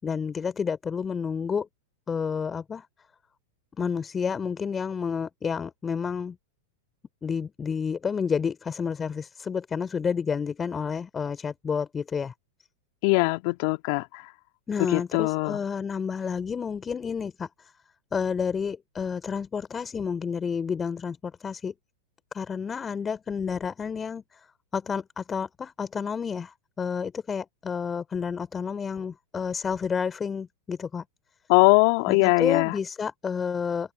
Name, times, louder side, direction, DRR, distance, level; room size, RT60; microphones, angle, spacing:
voice 1, 0.0-1.7 2.1-2.9 3.8-6.4 7.2-12.3 14.7-17.7 18.1-21.7 22.3-24.5 24.7-31.0 32.1-33.9, left 6 dB, 20° left, 4.3 m, -30 dB
voice 2, 13.0-14.2 14.9-15.6 31.5-32.7, left 30 dB, 55° left, 2.3 m, -21 dB
open air
hypercardioid pair, 100°, 0 cm